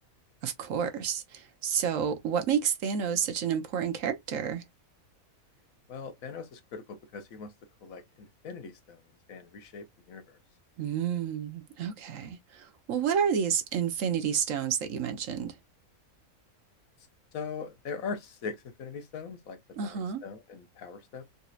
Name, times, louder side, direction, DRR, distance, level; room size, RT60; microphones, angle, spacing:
voice 1, 0.4-4.6 10.8-15.6 19.8-20.2, right 7 dB, 65° right, 1.0 m, -30 dB
voice 2, 5.9-7.5 7.8-9.0 9.3-10.4 17.3-21.2, left 5 dB, 70° left, 1.2 m, -41 dB
4.0 x 2.7 x 2.3 m
omnidirectional pair, 1.5 m